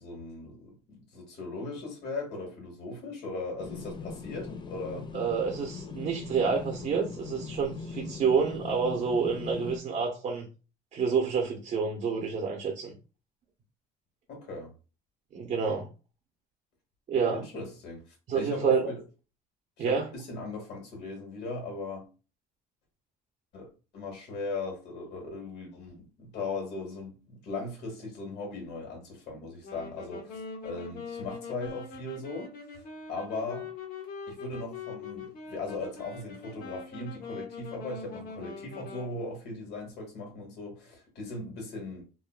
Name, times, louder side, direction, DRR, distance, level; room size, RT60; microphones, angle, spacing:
voice 1, 0.0-5.1 14.3-14.7 17.3-18.0 18.3-19.0 19.8-22.0 23.5-23.7 23.9-33.7 34.3-42.0, left 3 dB, 75° left, 1.5 m, -38 dB
sound 1, 3.6-9.8, left 4 dB, 30° left, 0.4 m, -41 dB
voice 2, 5.1-10.5 10.9-12.9 15.3-15.9 17.1-17.4 18.3-18.8 19.8-20.1, right 5 dB, 50° right, 0.7 m, -28 dB
Wind instrument woodwind instrument, 29.6-39.2, left 4 dB, 60° left, 1.0 m, -42 dB
3.6 x 2.2 x 2.3 m
cardioid pair, 110°, 17 cm